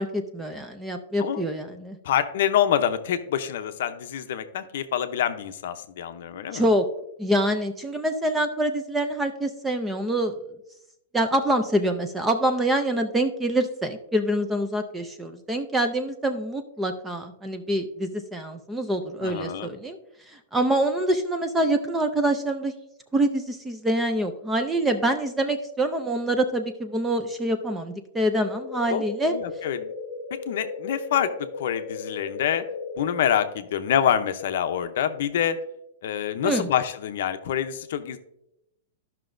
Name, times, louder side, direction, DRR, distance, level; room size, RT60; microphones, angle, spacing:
voice 1, 0.0-2.0 6.5-6.8 7.2-10.4 11.1-20.0 20.3-22.7 23.1-29.3 36.4-36.7, right 1 dB, 5° right, 7 dB, 0.4 m, -25 dB
voice 2, 2.0-6.7 19.2-19.7 28.9-29.9 30.3-32.7 33.0-35.6 36.0-38.2, left 9 dB, 50° left, 9 dB, 0.6 m, -26 dB
sound 1, 28.4-33.4, left 4 dB, 30° left, 1.2 m, -36 dB
13.0 x 5.8 x 2.6 m, 0.81 s
supercardioid pair, 175°, 0 cm